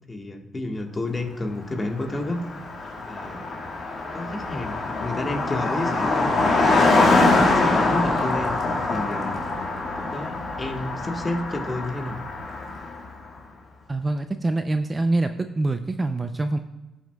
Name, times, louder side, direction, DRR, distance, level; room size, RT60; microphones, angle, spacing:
voice 1, 0.1-2.4 3.0-3.4 4.1-6.3 6.9-8.6 8.9-9.4 9.9-12.2, left 2 dB, 25° left, 4 dB, 1.3 m, -30 dB
Car passing by, 1.8-1.9 2.1-13.1, left 3 dB, 55° left, 1.8 m, -24 dB
voice 2, 13.9-16.6, right 2 dB, 20° right, 8 dB, 0.4 m, -25 dB
15.5 x 6.2 x 2.3 m, 1.1 s
cardioid pair, 90°, 0 cm